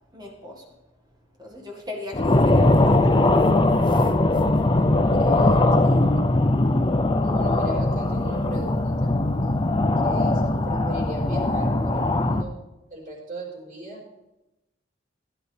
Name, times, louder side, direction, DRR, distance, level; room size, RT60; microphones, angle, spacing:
voice 1, 0.1-0.7 1.4-3.3, left 2 dB, 20° right, -1 dB, 2.0 m, -38 dB
sound 1, 2.1-12.4, left 2 dB, 25° left, 0.6 m, -20 dB
voice 2, 4.8-6.2 7.2-9.1 10.0-12.5 12.9-14.0, right 1 dB, 45° right, -3 dB, 4.4 m, -37 dB
17.0 x 11.0 x 3.5 m, 0.98 s
head